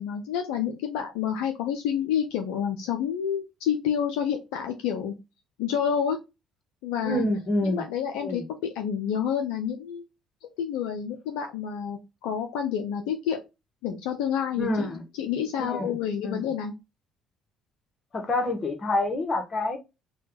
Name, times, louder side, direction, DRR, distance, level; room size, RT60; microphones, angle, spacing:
voice 1, 0.0-5.1 5.6-6.2 6.8-7.3 7.6-10.1 10.6-13.4 13.8-16.7, left 8 dB, 70° left, 0.4 m, -29 dB
voice 2, 7.0-7.8 8.2-8.4 14.6-15.0 15.6-15.9 16.2-16.5 18.1-19.8, left 2 dB, 40° left, 0.9 m, -27 dB
3.3 x 2.2 x 2.8 m
hypercardioid pair, 55°, 0 cm